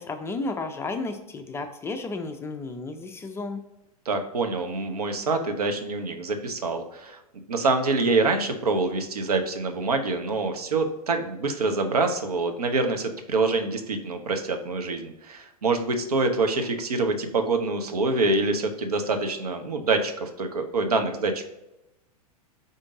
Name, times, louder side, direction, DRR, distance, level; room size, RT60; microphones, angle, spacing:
voice 1, 0.0-3.6, left 3 dB, 15° left, 5 dB, 0.3 m, -33 dB
voice 2, 4.1-7.2 7.5-21.5, right 3 dB, 75° right, 6 dB, 0.7 m, -26 dB
5.0 x 2.6 x 3.6 m, 0.92 s
figure-of-eight pair, 100°, 20 cm